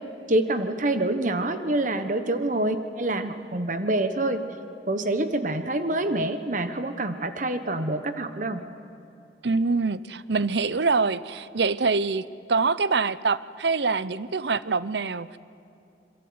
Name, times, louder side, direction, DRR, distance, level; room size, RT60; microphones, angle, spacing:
voice 1, 0.3-4.5 4.9-8.6, right 1 dB, 45° right, 9 dB, 1.2 m, -26 dB
voice 2, 9.4-15.4, right 4 dB, 75° right, 16 dB, 0.8 m, -25 dB
27.0 x 23.0 x 9.5 m, 2.7 s
head